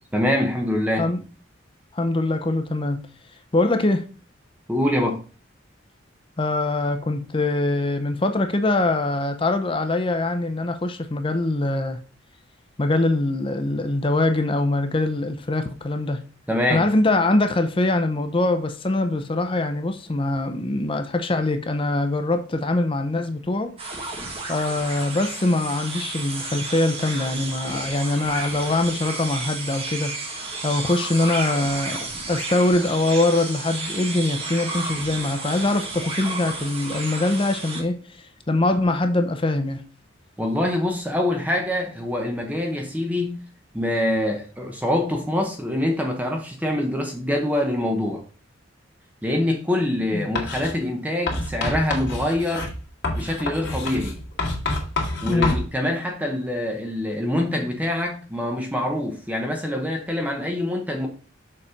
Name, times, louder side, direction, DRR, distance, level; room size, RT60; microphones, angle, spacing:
voice 1, 0.1-1.1 4.7-5.2 16.5-16.9 40.4-43.4 43.7-48.2 49.2-52.7 53.2-54.2 55.2-61.1, left 1 dB, 10° right, 0.9 m, -25 dB
voice 2, 1.9-3.0 3.5-4.0 6.4-12.0 12.8-16.2 16.7-23.7 24.5-39.8 50.1-50.3 55.2-55.6, left 2 dB, 25° left, 0.6 m, -23 dB
sound 1, 23.8-37.8, right 3 dB, 30° right, 1.5 m, -32 dB
Writing, 50.4-50.7 51.3-55.7, left 2 dB, 60° left, 2.1 m, -27 dB
6.7 x 4.2 x 5.0 m
head